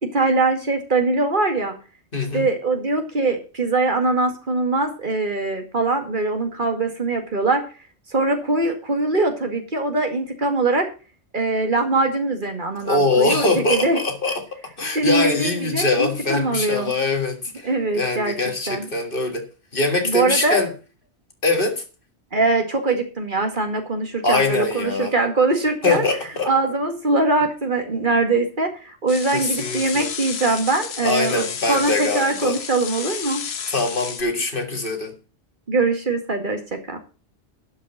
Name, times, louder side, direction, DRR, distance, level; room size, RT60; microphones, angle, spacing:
voice 1, 0.0-1.7 2.3-7.6 8.1-10.9 11.3-14.0 14.9-16.9 17.6-18.4 18.7-18.9 20.0-20.6 22.3-26.0 26.5-33.4 35.7-36.6 36.9-37.0, right 3 dB, 45° right, 2.3 m, -22 dB
voice 2, 2.1-2.5 12.8-19.5 19.7-20.7 21.4-21.8 24.2-25.1 25.8-26.5 29.3-30.1 31.0-32.6 33.7-35.2, left 3 dB, 50° left, 2.1 m, -23 dB
sound 1, 29.1-34.2, left 7 dB, 65° left, 1.2 m, -32 dB
11.5 x 5.5 x 7.2 m
omnidirectional pair, 1.2 m